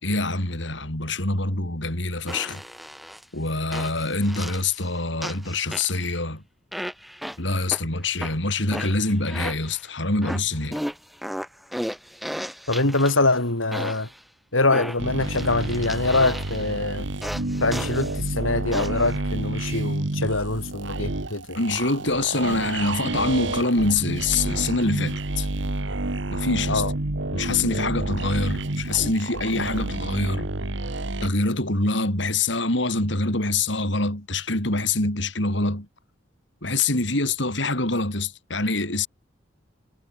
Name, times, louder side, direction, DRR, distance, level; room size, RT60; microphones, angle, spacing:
voice 1, 0.0-2.6 3.3-6.4 7.4-10.8 21.5-25.5 26.3-26.8 27.3-30.5 31.2-35.9 36.6-39.1, left 2 dB, 65° left, 5.6 m, -25 dB
sound 1, 2.3-3.2 3.7-4.9 5.2-6.2 6.7-7.8 8.2-9.8 10.2-13.3 13.7-14.2 14.7-16.7 17.2-18.2 18.7-19.1, equal, ahead, 6.7 m, -34 dB
voice 2, 12.7-14.1 14.5-17.1 17.6-21.6 26.7-26.9, left 2 dB, 90° left, 5.7 m, -24 dB
sound 2, 15.0-31.3, right 2 dB, 65° right, 1.5 m, -29 dB
head